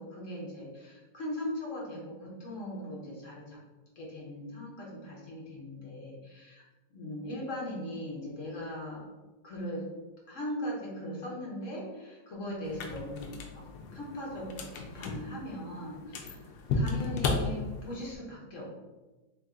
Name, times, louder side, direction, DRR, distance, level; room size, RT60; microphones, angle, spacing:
voice 1, 0.0-3.6 4.0-6.6 6.9-9.1 9.4-9.9 10.3-18.7, left 1 dB, 50° left, -4 dB, 1.2 m, -39 dB
sound 1, 12.6-18.1, left 3 dB, 75° left, 1.1 m, -35 dB
3.7 x 2.8 x 3.5 m, 1.2 s
omnidirectional pair, 1.9 m